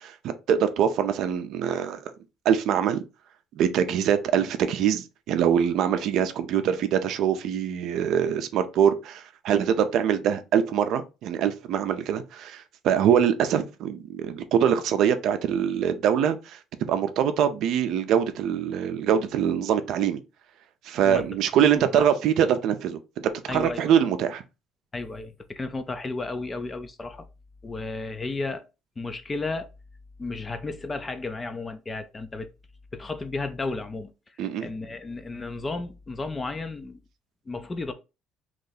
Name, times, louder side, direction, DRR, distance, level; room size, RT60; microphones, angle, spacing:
voice 1, 0.0-2.1 2.4-3.0 3.6-20.2 20.8-23.0 23.4-24.4 34.4-34.7, right 8 dB, 65° right, 0.5 m, -24 dB
voice 2, 21.7-22.1 23.5-23.9 24.9-27.3 27.6-28.7 29.0-29.7 30.2-32.5 32.9-34.1 34.6-37.0 37.5-37.9, left 3 dB, 20° left, 0.4 m, -33 dB
3.0 x 2.7 x 3.9 m
cardioid pair, 140°, 0 cm